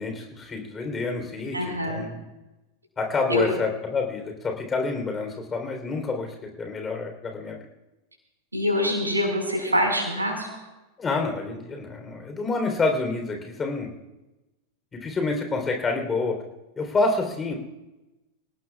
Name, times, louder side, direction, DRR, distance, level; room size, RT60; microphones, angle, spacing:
voice 1, 0.0-2.3 3.0-7.6 11.0-13.9 14.9-16.4 16.8-17.5, left 3 dB, 20° left, 3 dB, 3.7 m, -28 dB
voice 2, 1.5-2.1 3.3-3.5 8.5-10.5, left 1 dB, 80° right, 2 dB, 5.2 m, -25 dB
28.0 x 18.5 x 2.4 m, 1.0 s
figure-of-eight pair, 90°, 0 cm